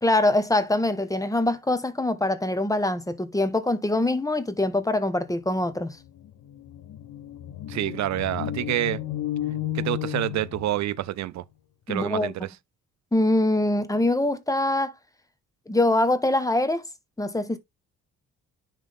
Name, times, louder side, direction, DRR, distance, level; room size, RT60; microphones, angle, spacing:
voice 1, 0.0-6.0 11.9-12.3 13.1-14.9 15.7-16.9 17.2-17.6, left 2 dB, 10° left, 1.2 m, -23 dB
sound 1, 5.7-5.8 6.0-11.1, left 12 dB, 75° left, 1.3 m, -33 dB
voice 2, 7.7-9.0 9.7-11.4 11.9-12.3, right 14 dB, 65° right, 0.5 m, -27 dB
10.5 x 3.6 x 3.6 m
cardioid pair, 90°, 30 cm